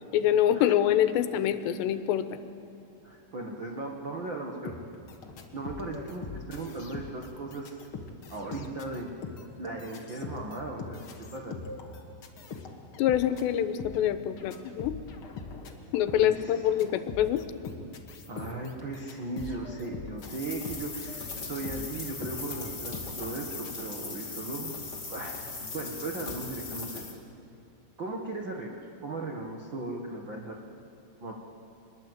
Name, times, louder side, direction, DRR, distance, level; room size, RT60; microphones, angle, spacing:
voice 1, 0.1-2.4 13.0-15.0 15.9-17.4, left 11 dB, 85° left, 10 dB, 3.1 m, -25 dB
voice 2, 3.0-4.7 5.5-7.9 8.3-9.1 9.5-11.0 11.3-11.5 16.2-16.6 18.3-24.8 25.1-25.4 25.7-27.0 28.0-30.6 31.2-31.3, right 2 dB, 70° right, 0 dB, 1.1 m, -37 dB
sound 1, 4.6-23.7, left 4 dB, 55° left, 1.5 m, -42 dB
sound 2, 20.2-27.1, left 4 dB, 25° left, 1.9 m, -39 dB
25.0 x 21.0 x 8.1 m, 2.5 s
omnidirectional pair, 4.9 m